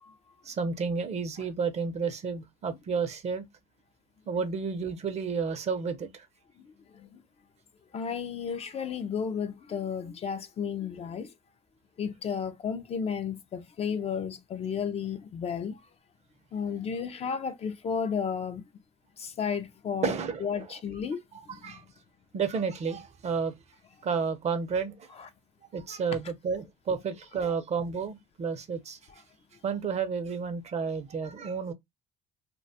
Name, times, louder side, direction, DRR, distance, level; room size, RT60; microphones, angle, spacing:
voice 1, 0.4-3.5 4.3-6.3 20.0-20.7 21.6-21.8 22.3-23.5 24.0-25.1 25.7-29.0 29.6-31.7, right 5 dB, 40° right, 0.5 m, -31 dB
voice 2, 7.9-11.3 12.0-15.7 16.5-18.6 19.2-20.1 20.4-21.2 21.6-21.7 25.2-25.3, left 7 dB, 40° left, 0.4 m, -32 dB
2.4 x 2.2 x 2.6 m
cardioid pair, 110°, 17 cm